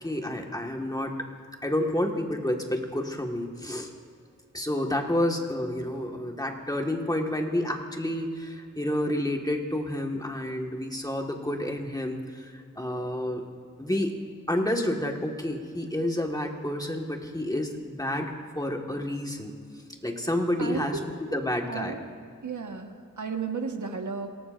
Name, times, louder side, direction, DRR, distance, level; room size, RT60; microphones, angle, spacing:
voice 1, 0.0-1.1 1.6-3.9 4.5-13.4 13.8-14.1 14.5-19.5 20.0-20.9 21.3-21.9, left 1 dB, 10° left, 2 dB, 1.7 m, -29 dB
voice 2, 20.5-21.0 21.7-22.0 22.4-24.3, right 5 dB, 65° right, 4 dB, 1.5 m, -33 dB
27.0 x 18.0 x 2.6 m, 2.2 s
wide cardioid pair, 80°, 32 cm